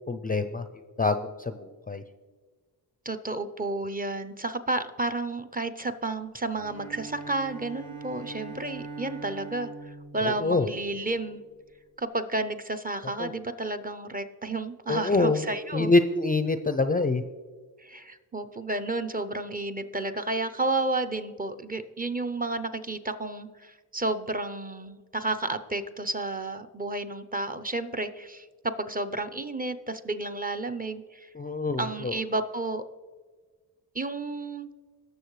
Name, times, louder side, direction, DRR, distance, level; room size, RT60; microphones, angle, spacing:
voice 1, 0.1-1.2 1.5-2.0 10.2-10.7 13.2-13.3 14.9-15.5 15.7-17.2 31.4-32.1, left 3 dB, 20° left, 10 dB, 0.4 m, -25 dB
voice 2, 3.0-11.4 12.0-15.9 17.8-31.3 31.8-32.8 33.9-34.7, right 2 dB, 20° right, 8 dB, 0.6 m, -31 dB
Bowed string instrument, 6.5-11.1, right 3 dB, 75° right, 3.0 m, -41 dB
18.5 x 6.5 x 3.1 m, 1.4 s
cardioid pair, 70°, 40 cm